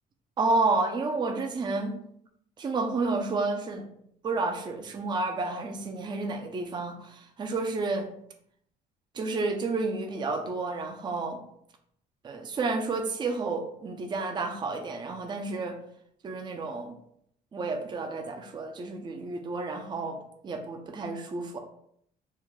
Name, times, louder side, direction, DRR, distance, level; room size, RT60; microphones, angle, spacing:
voice 1, 0.4-2.0 2.6-3.8 4.2-8.1 9.1-11.4 12.2-15.8 16.2-16.9 17.5-21.6, right 3 dB, 25° right, 4 dB, 0.4 m, -30 dB
3.2 x 2.1 x 3.5 m, 0.70 s
cardioid pair, 110°, 17 cm